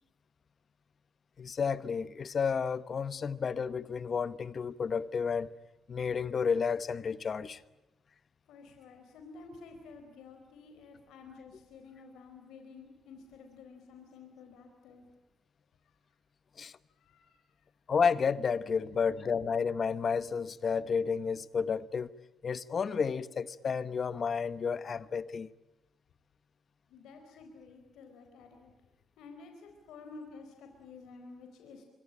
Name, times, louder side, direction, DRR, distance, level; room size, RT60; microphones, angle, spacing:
voice 1, 1.4-5.5 5.9-7.6 16.6-16.7 17.9-22.1 22.4-25.5, left 6 dB, 45° left, 1.0 m, -31 dB
voice 2, 8.5-15.0 17.0-17.4 19.0-19.1 26.9-28.7 29.2-31.8, left 4 dB, 85° left, 4.2 m, -51 dB
25.0 x 24.0 x 8.9 m
cardioid pair, 90°, 0 cm